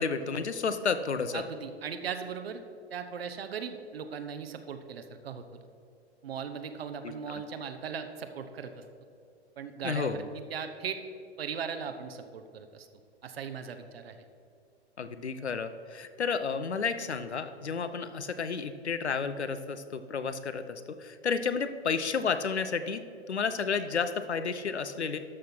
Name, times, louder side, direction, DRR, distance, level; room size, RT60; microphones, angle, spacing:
voice 1, 0.0-1.4 7.0-7.1 9.8-10.3 15.0-20.6 21.0-23.0 23.3-25.2, left 5 dB, 85° left, 11 dB, 0.8 m, -31 dB
voice 2, 1.3-2.6 2.9-5.6 6.2-8.8 9.6-11.0 11.4-12.9 13.2-14.2, right 7 dB, 65° right, 8 dB, 1.0 m, -38 dB
12.5 x 6.4 x 4.5 m, 2.4 s
figure-of-eight pair, 110°, 33 cm